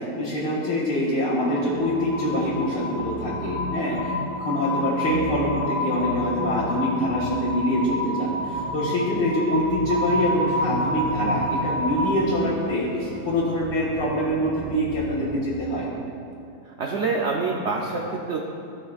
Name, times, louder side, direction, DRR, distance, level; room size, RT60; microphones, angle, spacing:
voice 1, 0.2-4.1 4.4-15.8, equal, 75° left, -11 dB, 2.3 m, -25 dB
sound 1, 1.4-12.2, left 1 dB, 10° right, 1.9 m, -29 dB
sound 2, 10.2-15.6, right 1 dB, 30° right, 1.9 m, -39 dB
voice 2, 16.6-18.4, right 4 dB, 70° right, -1 dB, 0.6 m, -27 dB
17.0 x 6.0 x 2.4 m, 2.5 s
omnidirectional pair, 2.0 m